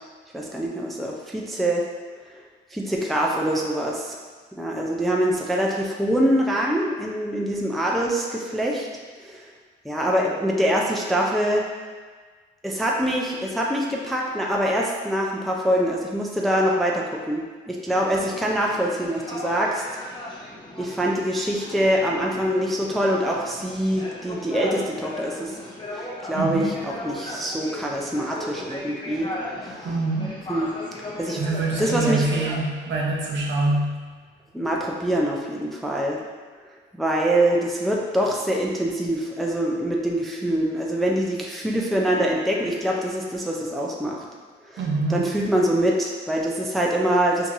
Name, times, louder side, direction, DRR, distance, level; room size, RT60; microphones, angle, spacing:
voice 1, 0.3-1.8 2.7-4.2 4.6-8.9 9.2-9.5 9.8-11.7 12.6-19.8 20.8-25.6 25.9-26.6 27.0-29.3 29.7-29.9 30.5-30.7 31.2-31.4 31.8-32.3 34.5-36.2 36.9-44.2 44.7-44.8 45.1-47.5, right 1 dB, ahead, -2 dB, 0.4 m, -24 dB
sound 1, 17.9-32.6, left 1 dB, 25° left, 0.8 m, -37 dB
voice 2, 26.3-26.7 29.8-30.5 31.4-34.1 44.8-45.3, right 2 dB, 65° right, -2 dB, 0.8 m, -25 dB
4.4 x 2.7 x 2.6 m, 1.5 s
cardioid pair, 90°, 20 cm